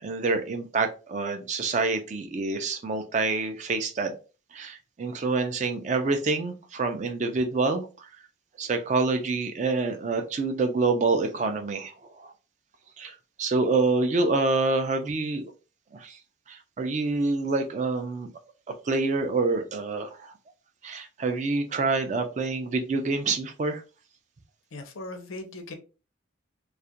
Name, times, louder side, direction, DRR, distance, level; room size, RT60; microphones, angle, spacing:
voice 1, 0.0-4.1 4.5-8.1 8.6-12.3 13.0-15.5 15.9-16.2 16.5-18.3 18.9-20.3 20.8-23.8, right 3 dB, 35° right, 0.4 m, -27 dB
voice 2, 24.7-25.7, left 2 dB, 85° left, 0.6 m, -39 dB
2.3 x 2.1 x 2.7 m
head